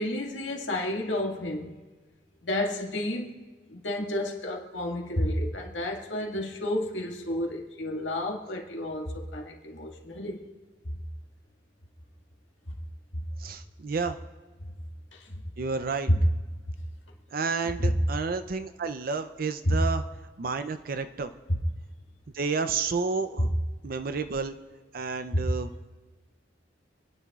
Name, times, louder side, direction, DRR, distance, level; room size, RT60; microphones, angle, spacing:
voice 1, 0.0-1.7 2.4-3.4 3.7-10.4 15.2-15.3 16.1-16.2 17.8-17.9 19.6-19.8 21.5-21.6 23.4-23.5 25.3-25.4, left 1 dB, 90° left, 1.9 m, -30 dB
voice 2, 13.4-14.2 15.6-16.1 17.3-20.0 20.4-21.3 22.3-23.5 23.8-24.5 24.9-25.9, right 4 dB, 55° right, 0.5 m, -30 dB
27.5 x 10.5 x 2.4 m
head